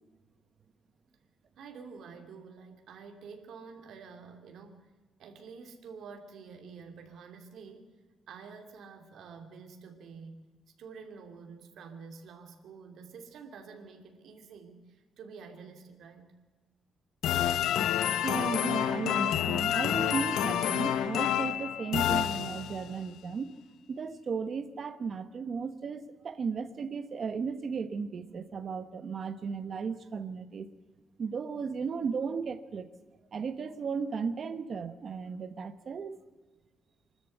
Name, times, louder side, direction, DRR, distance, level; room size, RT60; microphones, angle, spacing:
voice 1, 1.6-4.9 5.2-7.9 8.3-10.4 10.8-16.3, right 5 dB, 60° right, 4 dB, 2.9 m, -48 dB
sound 1, 17.2-23.0, left 10 dB, 75° left, 0.8 m, -28 dB
voice 2, 17.8-23.5 23.9-30.7 31.2-32.9 33.3-36.2, right 5 dB, 35° right, 11 dB, 1.2 m, -35 dB
25.5 x 13.0 x 8.0 m, 1.3 s
cardioid pair, 175°, 0 cm